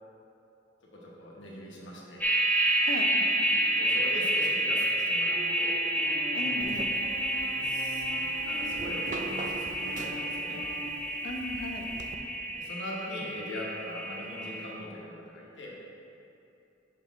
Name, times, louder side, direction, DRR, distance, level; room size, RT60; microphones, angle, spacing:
voice 1, 0.9-2.2 3.5-5.7 7.5-8.0 8.4-10.6 12.5-15.7, left 1 dB, 75° left, -4 dB, 1.2 m, -41 dB
sound 1, 2.2-14.7, right 1 dB, 10° left, 0.7 m, -29 dB
voice 2, 2.8-3.3 6.3-6.9 11.2-11.9, left 2 dB, 50° left, 4 dB, 0.5 m, -37 dB
sound 2, 5.3-10.9, equal, 60° right, 1.2 m, -42 dB
sound 3, 6.6-12.2, right 3 dB, 45° right, 0.4 m, -45 dB
6.3 x 5.2 x 3.5 m, 2.8 s
head